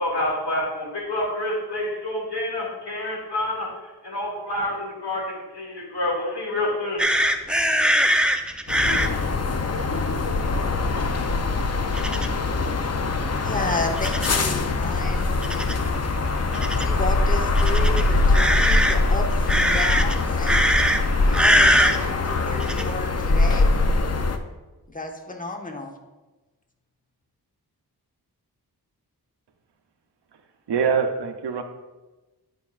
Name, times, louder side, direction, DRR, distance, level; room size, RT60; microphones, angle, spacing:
voice 1, 0.0-3.7 4.0-7.0, left 1 dB, 80° left, -3 dB, 2.3 m, -28 dB
sound 1, 7.0-9.1 11.9-12.3 14.0-14.5 15.4-15.7 16.5-16.8 17.5-18.9 19.5-20.1 20.4-21.0 21.3-22.0 22.6-22.8, equal, ahead, 0.6 m, -21 dB
sound 2, 8.7-24.4, left 3 dB, 40° left, 0.6 m, -23 dB
voice 2, 13.4-15.8 16.8-20.6 21.2-23.7 24.9-25.9, left 2 dB, 20° left, 3 dB, 1.0 m, -32 dB
voice 3, 30.7-31.6, right 6 dB, 85° right, 6 dB, 0.7 m, -23 dB
11.0 x 4.8 x 2.4 m, 1.2 s
cardioid pair, 45°, 40 cm